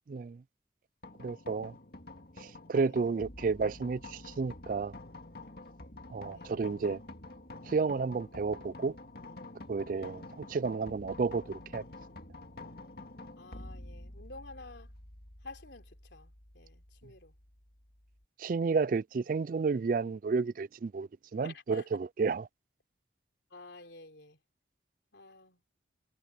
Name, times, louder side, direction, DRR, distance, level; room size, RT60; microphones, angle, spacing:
voice 1, 0.1-0.4 1.2-1.7 2.4-4.9 6.1-7.0 7.7-9.0 9.7-11.8 18.4-22.5, right 4 dB, 45° right, 0.3 m, -31 dB
sound 1, 1.0-18.2, left 2 dB, 55° left, 2.2 m, -49 dB
voice 2, 13.4-14.9 15.4-17.3 19.2-19.3 21.4-21.9 23.5-24.4 25.1-25.6, left 3 dB, 70° left, 3.5 m, -51 dB
head